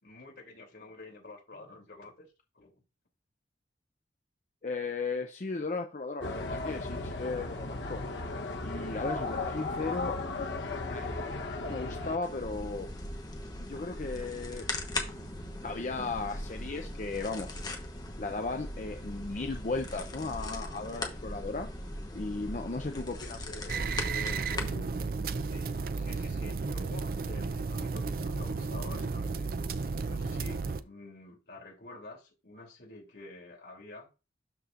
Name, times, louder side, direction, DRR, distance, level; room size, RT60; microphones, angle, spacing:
voice 1, 0.0-2.8 25.5-29.5 30.0-34.1, left 2 dB, 70° left, 3.2 m, -49 dB
voice 2, 4.6-8.0 8.6-10.5 10.9-11.1 11.7-12.9 13.6-14.7 15.6-17.6 18.2-21.7 22.1-24.9, left 3 dB, 45° left, 0.6 m, -36 dB
sound 1, 6.2-12.2, left 3 dB, 90° left, 1.0 m, -35 dB
sound 2, 12.2-24.8, left 1 dB, 25° left, 1.1 m, -39 dB
sound 3, 23.7-30.8, right 4 dB, 55° right, 0.5 m, -33 dB
12.5 x 4.3 x 2.5 m
head